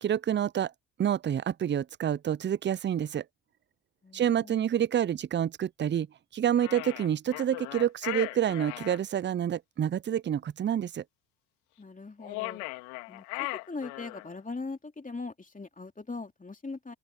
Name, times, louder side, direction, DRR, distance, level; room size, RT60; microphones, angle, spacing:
voice 1, 0.0-0.7 1.0-3.2 4.1-6.1 6.3-11.0, right 9 dB, 25° right, 0.5 m, -28 dB
voice 2, 4.0-4.7 11.8-12.6 13.1-16.9, left 3 dB, 20° left, 2.9 m, -40 dB
sound 1, 6.6-9.0 12.2-14.3, left 25 dB, 80° left, 2.4 m, -38 dB
open air
hypercardioid pair, 60°, 44 cm